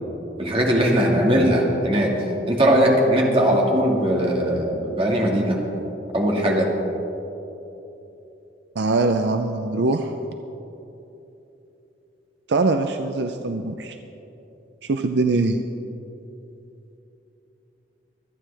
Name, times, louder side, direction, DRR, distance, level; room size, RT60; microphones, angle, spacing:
voice 1, 0.4-2.1 2.5-5.6 6.1-6.7, equal, 30° right, -1 dB, 1.9 m, -19 dB
voice 2, 8.8-10.1 12.5-14.0 14.8-15.6, right 3 dB, 70° right, 6 dB, 0.5 m, -22 dB
24.5 x 9.3 x 3.4 m, 3.0 s
head